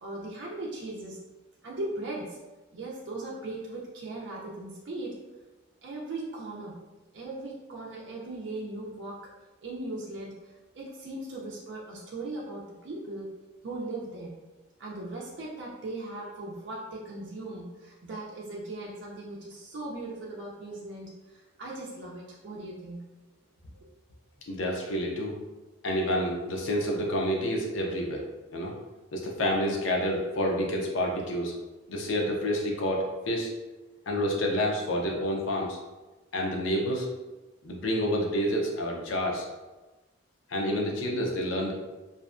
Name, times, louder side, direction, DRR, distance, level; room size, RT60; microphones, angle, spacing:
voice 1, 0.0-1.2 1.6-2.4 2.7-5.1 5.8-6.7 7.1-9.2 9.6-10.3 10.7-13.3 13.6-14.3 14.8-23.0, right 2 dB, 65° right, -4 dB, 0.4 m, -38 dB
voice 2, 24.4-25.4 25.8-28.3 28.5-28.7 29.1-31.5 31.9-33.5 34.1-35.8 36.3-37.1 37.6-39.5 40.5-41.7, equal, 85° left, 0 dB, 0.5 m, -28 dB
2.6 x 2.1 x 2.4 m, 1.1 s
head